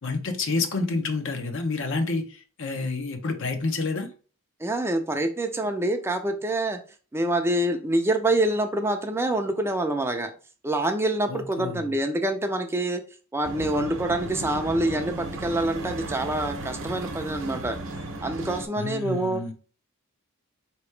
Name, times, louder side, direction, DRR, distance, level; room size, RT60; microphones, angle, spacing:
voice 1, 0.0-4.1 11.3-11.8 18.8-19.5, left 3 dB, 60° left, 0.7 m, -29 dB
voice 2, 4.6-6.8 7.1-10.3 10.6-13.0 13.3-17.8 18.2-19.4, right 1 dB, 10° right, 0.4 m, -26 dB
sound 1, 13.4-18.7, right 2 dB, 65° right, 0.8 m, -35 dB
4.6 x 3.0 x 3.2 m
head